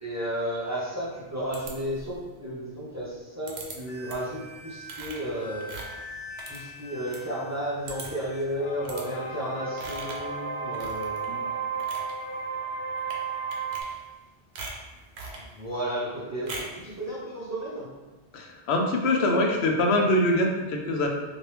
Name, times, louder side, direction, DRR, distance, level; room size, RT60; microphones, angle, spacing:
voice 1, 0.0-5.7 6.5-11.2 15.5-17.9, equal, 20° right, -8 dB, 0.6 m, -33 dB
sound 1, 1.5-2.2 3.5-3.8 4.1-4.4 4.8-7.2 7.5-7.6 7.9-8.3 8.8-9.1 9.8-10.3 10.7-11.3 11.7-12.1 13.0-13.2 13.5-14.2 14.6-15.5 16.5-16.8, right 3 dB, 80° right, 0.9 m, -41 dB
sound 2, 3.9-13.8, right 4 dB, 55° left, 0.6 m, -35 dB
voice 2, 18.3-21.1, left 1 dB, 85° left, 2 dB, 0.8 m, -24 dB
2.9 x 2.6 x 3.2 m, 1.2 s
omnidirectional pair, 1.1 m